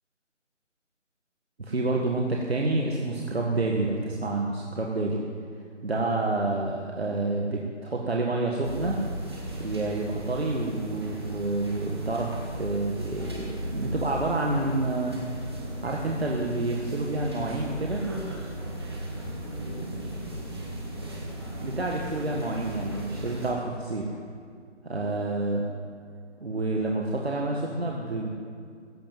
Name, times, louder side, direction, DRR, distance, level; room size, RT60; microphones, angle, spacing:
voice 1, 1.6-5.2 5.8-9.0 9.6-15.2 15.8-18.0 21.6-24.1 24.8-25.6 26.4-28.3, right 2 dB, 55° right, -1 dB, 1.7 m, -28 dB
sound 1, 8.6-23.5, right 1 dB, 20° right, 1.7 m, -36 dB
15.5 x 8.1 x 9.2 m, 2.2 s
figure-of-eight pair, 170°, 37 cm